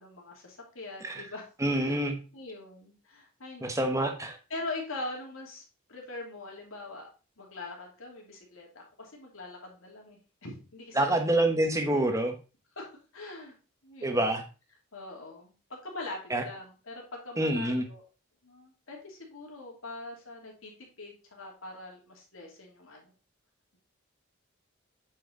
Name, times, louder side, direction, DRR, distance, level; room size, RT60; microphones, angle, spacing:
voice 1, 0.0-1.5 1.7-2.0 2.3-3.9 4.5-5.6 5.9-7.1 7.4-11.4 11.9-12.0 12.8-12.9 13.1-13.5 13.8-14.3 14.9-18.0 18.4-20.7 21.0-23.1, left 2 dB, 80° left, -1 dB, 2.7 m, -42 dB
voice 2, 1.6-2.2 3.6-4.4 11.0-12.3 14.0-14.4 16.3-16.4 17.4-17.8, right 1 dB, 15° right, 5 dB, 1.1 m, -27 dB
8.3 x 4.7 x 3.9 m, 0.33 s
head